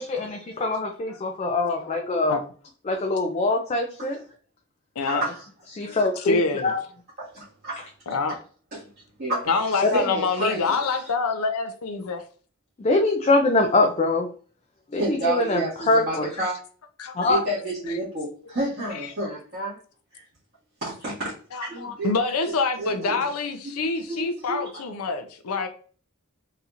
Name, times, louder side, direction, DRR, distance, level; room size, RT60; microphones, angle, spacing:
voice 1, 0.0-2.4 2.9-4.2 5.7-6.8 9.8-9.9 12.8-14.3 14.9-16.3 17.2-17.4, left 2 dB, 30° left, 0.3 m, -23 dB
voice 2, 5.0-5.5 5.9-6.0 7.2-7.9 8.7-8.8 9.2-11.1 12.0-12.1 15.0-16.6 17.2-19.8 20.1-20.2 20.8-21.3 21.6-22.1 22.5-23.2 24.1-24.8, right 1 dB, 45° right, 1.8 m, -30 dB
voice 3, 5.8-6.7 8.1-8.4 9.5-12.2 17.0-17.1 18.9-19.0 21.5-25.7, left 4 dB, 90° left, 0.5 m, -26 dB
4.1 x 2.7 x 2.5 m
head